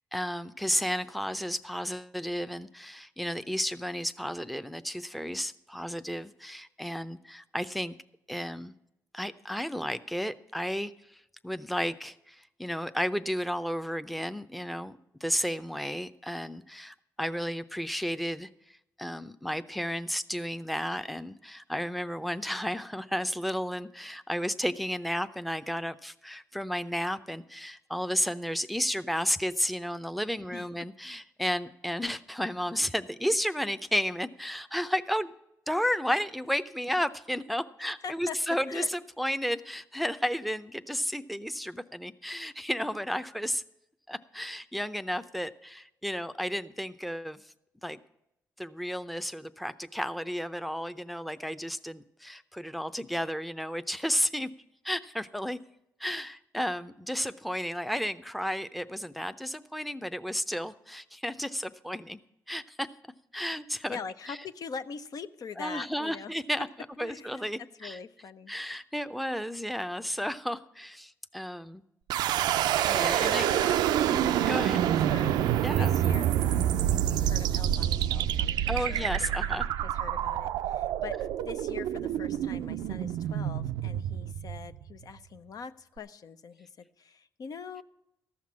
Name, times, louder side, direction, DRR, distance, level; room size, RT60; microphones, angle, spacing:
voice 1, 0.1-8.0 8.3-8.7 9.1-18.5 19.0-35.3 35.7-43.6 44.1-47.4 47.8-48.0 48.6-54.5 54.8-55.6 56.0-62.2 62.5-62.9 63.3-64.0 64.3-64.4 65.6-66.7 67.0-68.0 68.5-71.8 72.8-73.5 74.1-75.0 75.6-75.9 78.7-79.6, equal, ahead, 11 dB, 0.6 m, -33 dB
voice 2, 38.0-38.4 38.7-38.9 63.9-66.3 67.0-67.5 67.8-68.5 73.2-73.8 75.1-79.6 79.9-87.8, left 6 dB, 60° left, 10 dB, 0.6 m, -43 dB
sound 1, 72.1-85.0, right 11 dB, 90° right, 0.4 m, -27 dB
14.0 x 5.9 x 8.5 m, 0.84 s
supercardioid pair, 60°, 7 cm